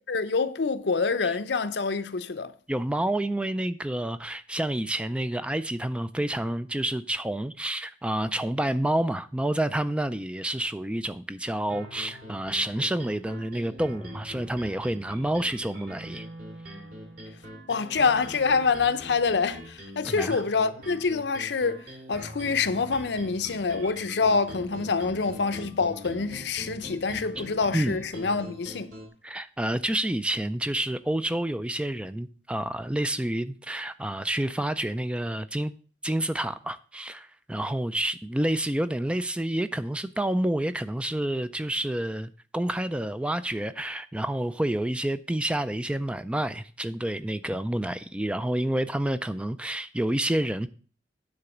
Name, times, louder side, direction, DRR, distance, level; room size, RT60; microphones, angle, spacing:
voice 1, 0.1-2.5 17.7-28.9, left 4 dB, 70° left, 0.6 m, -26 dB
voice 2, 2.7-16.3 20.1-20.4 27.4-27.5 27.7-28.0 29.2-35.7 36.0-50.7, right 1 dB, 5° right, 0.3 m, -29 dB
sound 1, 11.7-29.1, equal, 55° right, 3.2 m, -43 dB
9.8 x 3.9 x 7.1 m
head